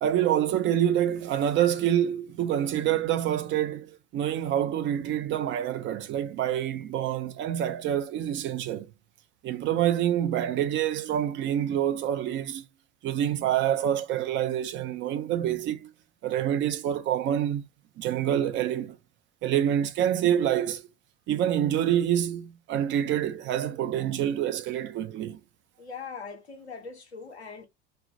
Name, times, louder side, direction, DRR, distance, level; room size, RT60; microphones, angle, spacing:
voice 1, 0.0-8.9 9.4-12.6 13.0-15.9 16.2-17.6 18.0-19.0 19.4-20.8 21.3-25.4, right 10 dB, 35° right, 0.5 m, -27 dB
voice 2, 25.8-27.7, left 5 dB, 90° left, 0.5 m, -41 dB
2.2 x 2.1 x 2.6 m
figure-of-eight pair, 65°, 32 cm